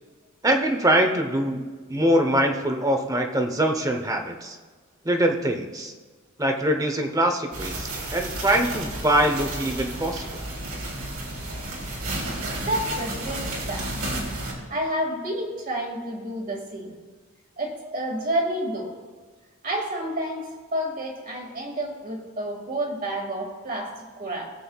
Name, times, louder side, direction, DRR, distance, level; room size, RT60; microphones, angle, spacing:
voice 1, 0.4-4.6 5.0-5.9 6.4-10.3, right 1 dB, 15° right, 4 dB, 0.8 m, -23 dB
sound 1, 7.5-14.5, right 1 dB, 75° right, 2.9 m, -32 dB
voice 2, 12.5-14.1 14.7-16.9 17.6-18.9 19.6-24.4, right 1 dB, 40° right, 0 dB, 2.0 m, -30 dB
19.5 x 7.8 x 2.3 m, 1.5 s
head